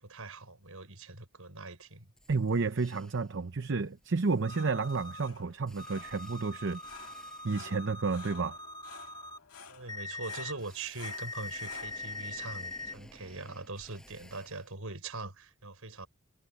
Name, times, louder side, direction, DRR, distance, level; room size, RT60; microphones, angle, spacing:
voice 1, 0.0-2.1 9.7-16.1, right 3 dB, 75° right, 5.3 m, -42 dB
sound 1, 1.8-1.9 2.2-3.4 3.7-7.8 10.6-14.8, equal, 5° left, 5.2 m, -58 dB
voice 2, 2.3-6.8 7.4-8.6, right 4 dB, 55° right, 0.7 m, -31 dB
sound 2, 4.1-13.9, left 5 dB, 75° left, 2.0 m, -54 dB
sound 3, 4.4-5.3 5.8-9.4 9.9-10.5 11.0-12.9, left 2 dB, 20° left, 2.5 m, -42 dB
head